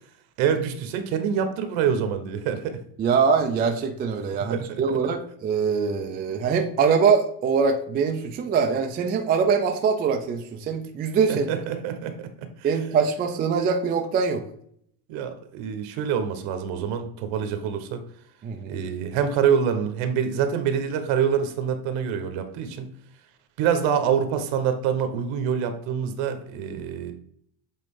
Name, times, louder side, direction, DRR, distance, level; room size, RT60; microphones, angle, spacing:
voice 1, 0.4-2.8 4.3-4.8 11.3-12.3 12.6-12.7 15.1-18.0 18.6-22.9 23.6-27.1, right 7 dB, 70° right, 8 dB, 1.2 m, -26 dB
voice 2, 3.0-11.5 12.6-14.4 18.4-18.8, right 6 dB, 20° right, 4 dB, 0.3 m, -23 dB
7.6 x 3.6 x 3.7 m, 0.67 s
cardioid pair, 165°, 49 cm